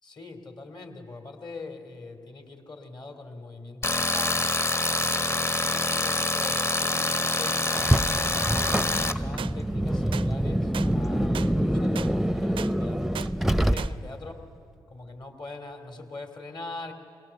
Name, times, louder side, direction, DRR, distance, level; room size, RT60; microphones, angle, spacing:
voice 1, 0.0-4.5 5.0-7.8 8.3-8.8 9.0-13.2 13.6-14.3 14.9-16.9, left 3 dB, 50° left, 5 dB, 2.7 m, -42 dB
Tools, 3.8-9.1, left 2 dB, 25° left, 0.9 m, -26 dB
Car, 7.7-14.2, right 1 dB, ahead, 0.6 m, -26 dB
sound 1, 9.4-9.5 10.1-10.3 10.7-10.9 11.3-11.5 12.0-12.1 12.6-12.7 13.1-13.3 13.8-13.9, right 9 dB, 65° right, 0.4 m, -35 dB
21.5 x 18.5 x 6.9 m, 2.5 s
supercardioid pair, 45°, 10 cm